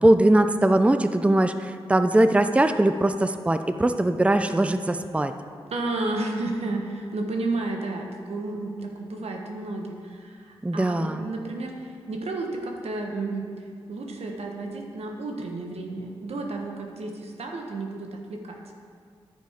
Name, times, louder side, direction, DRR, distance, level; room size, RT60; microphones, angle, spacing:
voice 1, 0.0-5.3 10.6-11.2, right 1 dB, 10° right, 9 dB, 0.5 m, -21 dB
voice 2, 5.7-18.6, right 2 dB, 75° right, 2 dB, 1.2 m, -32 dB
10.5 x 8.8 x 3.6 m, 2.2 s
cardioid pair, 45°, 11 cm